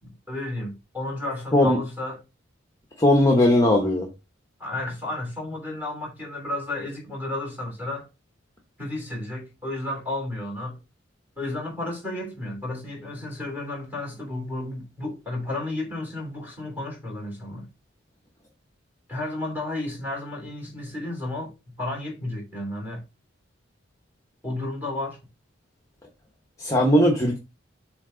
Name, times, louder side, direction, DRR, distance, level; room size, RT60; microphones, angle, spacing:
voice 1, 0.0-2.2 4.6-8.1 8.8-10.8 11.4-17.7 19.1-21.5 21.8-23.0 24.4-25.2, left 2 dB, 10° right, 3.3 m, -32 dB
voice 2, 3.0-4.1 26.6-27.4, left 1 dB, 15° left, 1.0 m, -18 dB
7.4 x 3.3 x 3.9 m
head